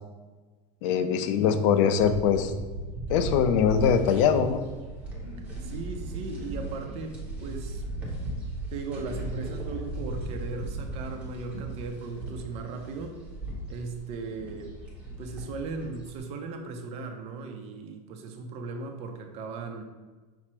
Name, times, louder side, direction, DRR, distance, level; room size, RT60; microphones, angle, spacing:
voice 1, 0.8-2.5 3.1-4.6, left 7 dB, 50° left, 9 dB, 0.4 m, -22 dB
sound 1, 2.0-16.2, right 1 dB, 5° right, 0.9 m, -37 dB
voice 2, 5.6-7.2 7.4-7.8 8.7-13.2 13.7-14.7 15.2-19.8, right 4 dB, 30° right, 4 dB, 0.5 m, -37 dB
5.9 x 2.0 x 4.3 m, 1.3 s
supercardioid pair, 155°, 21 cm